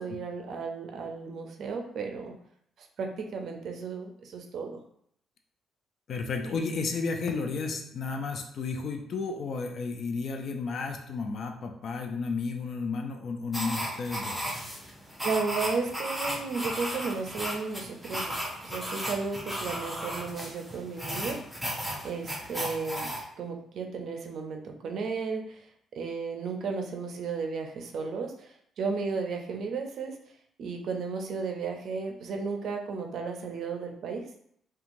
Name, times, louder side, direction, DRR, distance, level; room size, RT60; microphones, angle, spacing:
voice 1, 0.0-2.4 2.8-4.8 15.2-21.4 22.0-23.1 23.4-30.2 30.6-34.3, right 4 dB, 65° right, 3 dB, 0.4 m, -34 dB
voice 2, 6.1-14.5, left 4 dB, 60° left, 4 dB, 0.4 m, -32 dB
sound 1, 13.5-23.2, equal, 5° left, 0.7 m, -35 dB
2.9 x 2.3 x 2.6 m, 0.68 s
cardioid pair, 90°, 0 cm